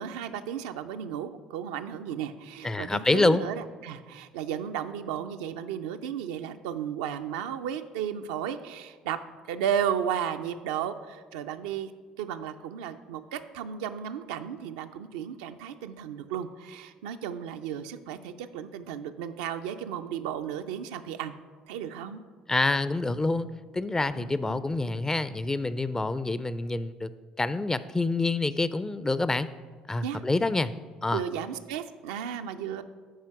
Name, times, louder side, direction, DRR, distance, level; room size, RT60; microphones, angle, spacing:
voice 1, 0.0-9.2 9.5-11.9 12.2-21.3 21.7-22.2 24.2-24.6 30.0-30.2 31.1-32.8, right 9 dB, 80° right, 7 dB, 0.4 m, -34 dB
voice 2, 2.6-3.4 22.5-23.5 23.7-27.1 27.4-29.5 29.9-30.7 31.0-31.2, left 2 dB, 15° left, 15 dB, 0.4 m, -27 dB
11.0 x 4.4 x 4.7 m, 1.5 s
hypercardioid pair, 60°, 3 cm